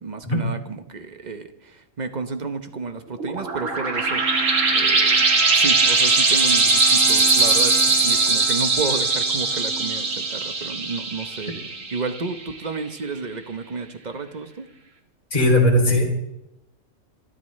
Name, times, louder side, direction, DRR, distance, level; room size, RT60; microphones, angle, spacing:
voice 1, 0.0-4.2 4.7-5.3 5.5-11.5 11.9-14.7, right 4 dB, 35° right, 8 dB, 0.9 m, -31 dB
sound 1, 3.2-12.4, right 3 dB, 60° right, 2.0 m, -20 dB
voice 2, 15.3-16.0, left 1 dB, 30° left, -1 dB, 3.1 m, -17 dB
26.5 x 12.5 x 3.2 m, 0.87 s
omnidirectional pair, 1.5 m